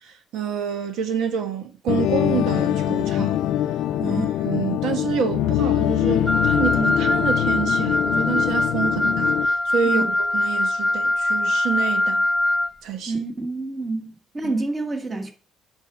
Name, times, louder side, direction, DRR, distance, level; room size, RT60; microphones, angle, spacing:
voice 1, 0.0-3.4 4.0-12.3 12.8-13.1 14.4-14.5, right 7 dB, 75° right, 1.2 m, -28 dB
sound 1, 1.9-9.5, left 12 dB, 85° left, 0.6 m, -23 dB
Wind instrument woodwind instrument, 6.3-12.7, left 1 dB, 5° left, 0.4 m, -22 dB
voice 2, 13.1-15.3, right 2 dB, 20° right, 1.4 m, -28 dB
8.5 x 4.8 x 5.9 m
cardioid pair, 150°, 0 cm